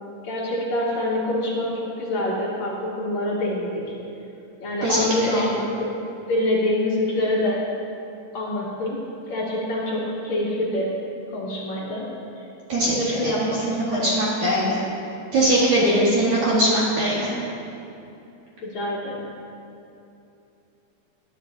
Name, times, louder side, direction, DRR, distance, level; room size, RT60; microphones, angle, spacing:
voice 1, 0.2-3.8 4.6-6.0 6.3-7.6 8.3-9.0 9.3-10.9 11.3-12.1 12.9-14.2 18.6-19.2, left 1 dB, 70° left, -6 dB, 1.6 m, -25 dB
voice 2, 12.7-14.8 15.3-17.3, right 1 dB, 55° right, -7 dB, 2.3 m, -21 dB
19.0 x 10.0 x 2.7 m, 2.7 s
omnidirectional pair, 5.2 m